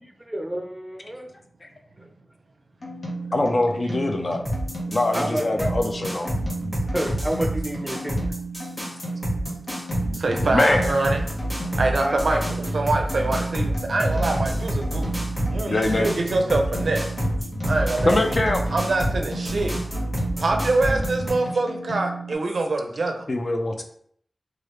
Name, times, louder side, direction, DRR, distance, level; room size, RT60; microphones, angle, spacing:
voice 1, 0.0-1.3 2.0-2.1 5.1-5.7 6.9-8.2 12.0-12.4, right 1 dB, 5° right, 2 dB, 0.5 m, -29 dB
sound 1, 2.8-22.3, right 2 dB, 80° left, 0.8 m, -34 dB
voice 2, 3.3-4.4 4.9-6.3 10.4-10.9 15.7-16.1 18.1-18.6 23.3-23.8, left 2 dB, 50° left, 4 dB, 0.4 m, -23 dB
sound 2, 4.5-21.3, equal, 15° left, 1.2 m, -28 dB
voice 3, 10.1-11.2 11.8-15.2 15.5-17.1 17.7-18.4 18.7-19.7 20.4-23.1, right 2 dB, 80° right, 3 dB, 0.4 m, -25 dB
3.1 x 2.3 x 3.0 m, 0.63 s
wide cardioid pair, 80°, 0 cm